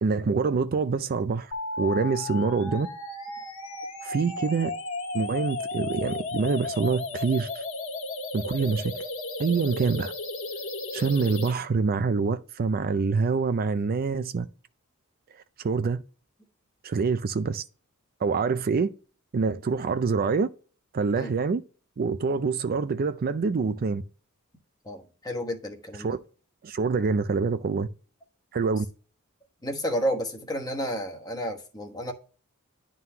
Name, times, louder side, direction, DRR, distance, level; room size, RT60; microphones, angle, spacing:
voice 1, 0.0-2.9 4.0-4.7 5.1-7.6 8.3-8.9 9.4-10.1 10.9-14.5 15.6-16.0 16.8-17.6 18.2-18.9 19.3-20.5 20.9-21.6 22.0-24.0 26.0-26.2 26.6-27.9 28.5-28.9, right 4 dB, 40° right, 0.4 m, -26 dB
sound 1, 1.5-11.5, left 3 dB, 65° left, 1.7 m, -34 dB
voice 2, 24.8-26.2 29.6-32.1, equal, 20° left, 1.1 m, -31 dB
11.0 x 3.8 x 2.8 m
head